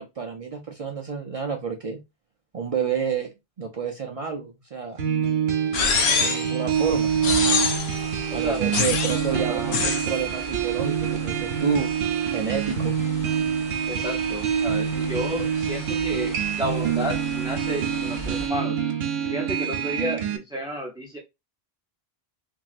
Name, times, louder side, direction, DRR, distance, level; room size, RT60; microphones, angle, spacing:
voice 1, 0.0-2.0 2.5-3.3 3.6-5.0 6.2-7.1 8.3-11.9 12.3-13.0, right 6 dB, 50° right, 0.4 m, -29 dB
sound 1, 5.0-20.4, right 8 dB, 75° right, 0.9 m, -26 dB
sound 2, 5.7-6.5 7.2-8.0 8.7-9.3 9.7-10.1, left 5 dB, 80° left, 0.9 m, -24 dB
sound 3, 6.7-18.5, right 1 dB, 15° left, 1.8 m, -41 dB
voice 2, 8.3-8.6 9.3-9.8 13.9-18.8 19.3-21.2, equal, 5° right, 0.5 m, -32 dB
3.0 x 2.7 x 2.4 m
omnidirectional pair, 1.1 m